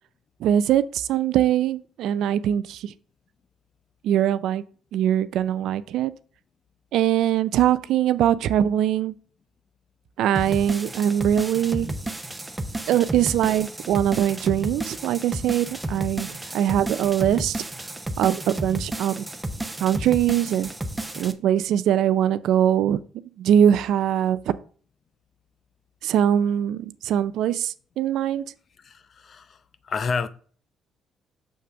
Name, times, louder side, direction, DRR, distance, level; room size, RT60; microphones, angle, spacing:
voice 1, 0.4-2.9 4.0-4.6 4.9-6.1 6.9-9.1 10.2-11.9 12.9-17.6 18.2-19.2 19.8-20.7 21.2-23.0 23.4-24.4 26.0-28.4, right 10 dB, 80° right, 0.4 m, -22 dB
sound 1, 10.4-21.3, right 1 dB, 10° right, 0.7 m, -32 dB
voice 2, 28.8-29.6 29.8-30.3, left 5 dB, 50° left, 0.6 m, -29 dB
6.5 x 3.4 x 5.7 m
cardioid pair, 85°, 0 cm